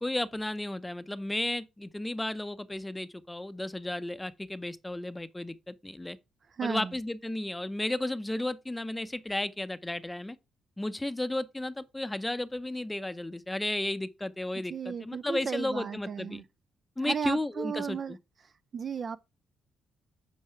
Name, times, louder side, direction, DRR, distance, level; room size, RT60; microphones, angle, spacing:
voice 1, 0.0-6.2 6.6-10.4 10.8-16.4 17.0-18.2, left 1 dB, 10° left, 0.6 m, -33 dB
voice 2, 6.6-6.9 14.7-16.4 17.0-18.2 18.7-19.2, right 6 dB, 45° right, 0.4 m, -34 dB
8.6 x 4.7 x 4.4 m
cardioid pair, 90°, 0 cm